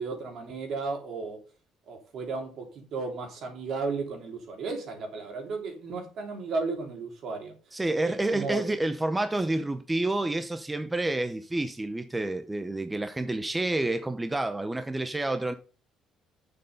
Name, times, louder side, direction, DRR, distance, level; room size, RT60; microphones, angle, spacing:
voice 1, 0.0-1.4 1.9-7.5 8.0-8.6, right 4 dB, 55° right, 3.6 m, -34 dB
voice 2, 7.7-15.6, right 2 dB, 10° right, 0.7 m, -29 dB
8.9 x 6.9 x 5.3 m
cardioid pair, 130°, 0 cm